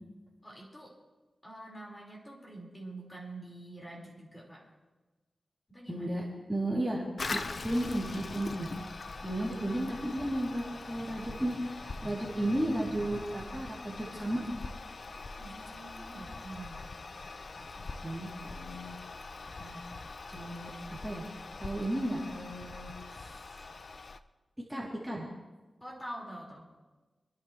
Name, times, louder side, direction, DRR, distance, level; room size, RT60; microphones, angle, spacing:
voice 1, 0.4-1.0 1.4-4.7 5.7-6.1 15.4-16.9 25.8-26.7, right 1 dB, 25° left, -3 dB, 5.2 m, -46 dB
voice 2, 5.9-6.2 6.5-7.0 7.3-8.7 9.2-14.5 18.0-18.9 19.6-19.8 20.3-20.7 21.0-21.2 21.6-23.7 24.7-25.3, right 1 dB, 5° right, -5 dB, 3.4 m, -34 dB
Toilet flush, 7.2-24.2, left 3 dB, 60° left, 0.7 m, -43 dB
27.0 x 11.5 x 3.4 m, 1.2 s
wide cardioid pair, 70°, 0 cm